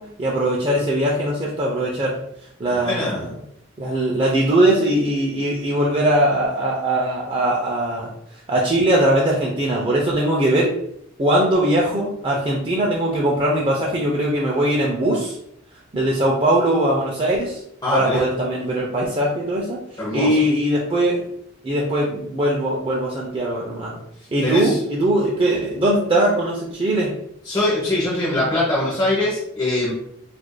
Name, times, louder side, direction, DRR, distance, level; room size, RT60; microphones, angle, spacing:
voice 1, 0.0-2.2 2.6-3.2 3.8-8.1 8.5-10.7 11.2-15.4 15.9-17.6 17.9-19.8 20.1-21.2 21.6-23.9 24.3-27.1, right 1 dB, 25° right, -3 dB, 0.4 m, -20 dB
voice 2, 2.8-3.3 17.8-18.2 20.0-20.4 24.4-24.8 27.4-29.9, left 1 dB, 20° left, -6 dB, 0.8 m, -22 dB
4.6 x 2.5 x 2.2 m, 0.76 s
head